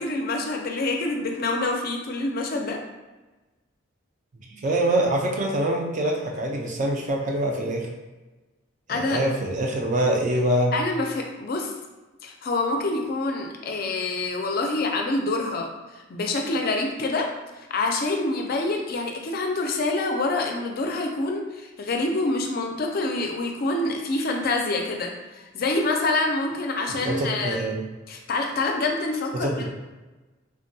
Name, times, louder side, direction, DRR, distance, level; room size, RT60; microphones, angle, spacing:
voice 1, 0.0-2.8 8.9-9.2 10.7-11.7 12.2-17.3 17.7-27.7 28.1-29.7, left 2 dB, 50° left, 2 dB, 0.4 m, -26 dB
voice 2, 4.6-7.9 8.9-10.7 26.9-27.8 29.3-29.7, right 1 dB, 40° right, 0 dB, 0.5 m, -24 dB
3.5 x 2.2 x 2.6 m, 1.2 s
head